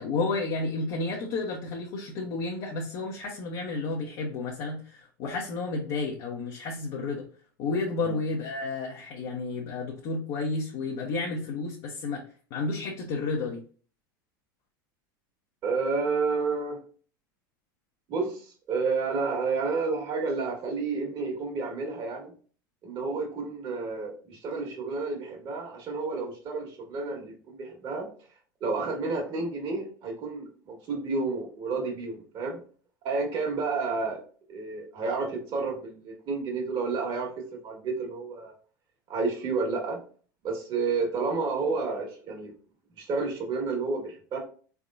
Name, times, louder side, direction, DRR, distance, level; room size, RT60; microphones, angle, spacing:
voice 1, 0.0-7.2 7.6-12.2 12.5-13.6, left 3 dB, 55° left, -2 dB, 0.9 m, -31 dB
voice 2, 15.6-16.8 18.1-22.3 22.8-28.1 28.6-32.6 33.0-34.2 34.5-38.5 39.1-40.0 40.4-42.5 43.0-44.4, right 4 dB, 45° right, 1 dB, 1.5 m, -30 dB
3.7 x 3.5 x 2.5 m, 0.41 s
hypercardioid pair, 90°, 11 cm